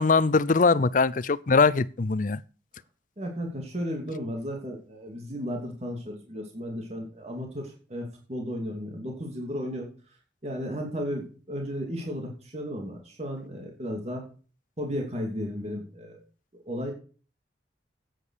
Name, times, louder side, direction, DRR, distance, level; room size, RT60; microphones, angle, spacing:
voice 1, 0.0-2.4, left 4 dB, 45° left, 0.5 m, -22 dB
voice 2, 3.2-9.9 10.4-14.2 14.8-16.2 16.7-16.9, equal, 35° right, 2.8 m, -34 dB
10.0 x 9.1 x 6.5 m
head